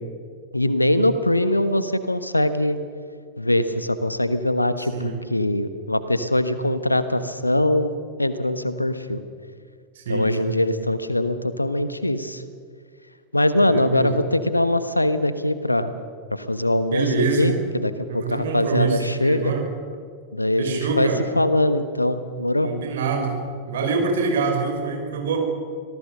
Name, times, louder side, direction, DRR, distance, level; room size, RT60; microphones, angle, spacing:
voice 1, 0.5-2.8 3.4-7.9 8.2-9.2 10.1-12.4 13.3-15.9 16.3-17.1 17.4-19.5 20.3-21.1 21.4-22.7, left 1 dB, 85° left, 12 dB, 1.2 m, -22 dB
voice 2, 4.8-5.2 10.0-10.6 13.7-14.2 16.9-17.5 18.1-19.6 20.6-21.2 22.6-23.4 23.7-25.4, right 4 dB, 60° right, 3 dB, 5.2 m, -25 dB
26.0 x 18.0 x 6.6 m, 2.1 s
figure-of-eight pair, 90°, 0 cm